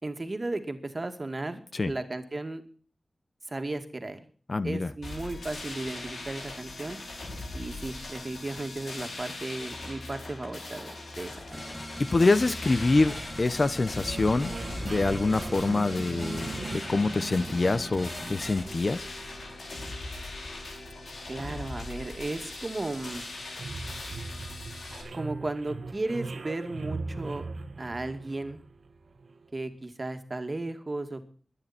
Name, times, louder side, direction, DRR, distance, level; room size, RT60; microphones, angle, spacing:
voice 1, 0.0-2.6 3.5-4.2 4.6-7.0 7.5-11.6 21.3-23.2 25.1-27.5 27.8-28.6 29.5-31.3, right 2 dB, 35° right, 7 dB, 2.3 m, -35 dB
voice 2, 4.5-4.9 12.0-14.6 14.8-19.1, left 3 dB, 40° left, 14 dB, 0.8 m, -25 dB
sound 1, 5.0-25.0, left 2 dB, 80° left, 5.7 m, -40 dB
sound 2, 11.5-18.6, equal, 5° left, 5.3 m, -40 dB
sound 3, 14.0-29.5, right 3 dB, 70° right, 1.6 m, -41 dB
22.0 x 10.0 x 4.4 m, 0.44 s
wide cardioid pair, 95°, 0 cm